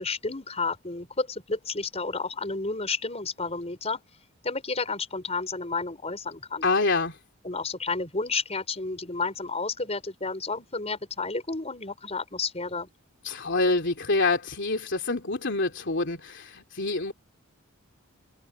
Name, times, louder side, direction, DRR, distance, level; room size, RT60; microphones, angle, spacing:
voice 1, 0.0-4.0 4.4-6.7 7.4-12.9, left 4 dB, 30° left, 5.3 m, -31 dB
voice 2, 6.6-7.1 13.2-17.1, left 3 dB, 60° left, 3.4 m, -26 dB
head